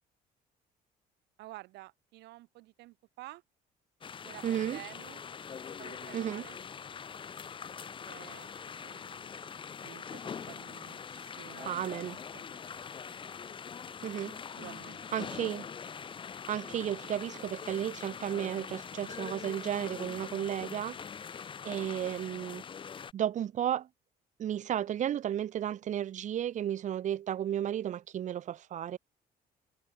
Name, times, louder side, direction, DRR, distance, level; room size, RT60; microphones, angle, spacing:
voice 1, 1.4-3.4 4.2-5.2 5.8-6.6 8.0-8.5 8.8-12.6 13.0-13.2 14.5-15.0, right 18 dB, 85° right, 3.0 m, -51 dB
sound 1, 4.0-23.1, left 6 dB, 30° left, 0.7 m, -43 dB
voice 2, 4.4-4.8 6.1-6.4 11.7-12.2 14.0-14.4 15.1-15.7 16.5-21.0 21.6-22.6 23.1-23.9 24.4-29.0, right 10 dB, 45° right, 0.7 m, -33 dB
cardioid pair, 110°, 17 cm